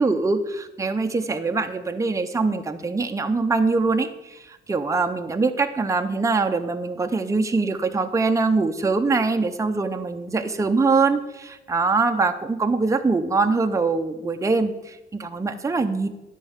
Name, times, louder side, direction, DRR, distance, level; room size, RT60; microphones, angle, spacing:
voice 1, 0.0-16.1, right 3 dB, 15° right, 6 dB, 0.7 m, -23 dB
10.5 x 4.6 x 7.3 m, 0.99 s
cardioid pair, 90°, 20 cm